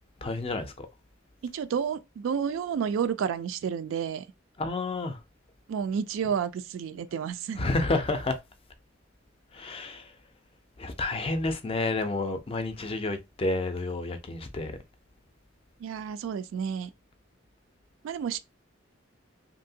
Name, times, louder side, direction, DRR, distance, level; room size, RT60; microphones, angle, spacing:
voice 1, 0.2-0.9 4.6-5.2 7.6-8.4 9.5-10.1 10.8-14.8, left 2 dB, 30° left, 0.4 m, -30 dB
voice 2, 1.5-4.2 5.7-7.7 15.8-16.9 18.0-18.4, right 7 dB, 75° right, 0.3 m, -30 dB
2.7 x 2.6 x 2.7 m
head